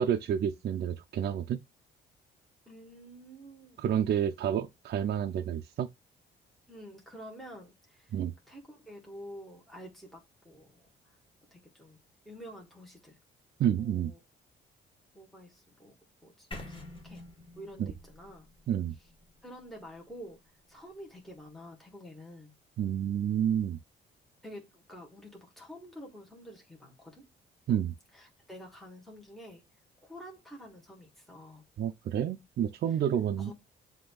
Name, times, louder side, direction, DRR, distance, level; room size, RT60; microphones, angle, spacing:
voice 1, 0.0-1.6 3.8-5.9 8.1-8.3 13.6-14.1 17.8-17.9 18.7-18.9 22.8-23.8 27.7-27.9 31.8-33.5, right 9 dB, 55° right, 0.5 m, -29 dB
voice 2, 2.7-3.8 6.7-8.1 8.5-10.8 11.5-12.0 12.2-13.2 13.8-14.2 15.1-15.9 16.2-16.8 17.0-17.2 17.5-18.5 19.4-20.4 20.7-22.5 24.4-27.3 28.1-29.6 30.0-31.6 33.4-33.5, equal, ahead, 1.6 m, -48 dB
sound 1, 16.5-20.5, left 2 dB, 25° left, 1.3 m, -48 dB
7.6 x 2.7 x 2.3 m
cardioid pair, 90°, 20 cm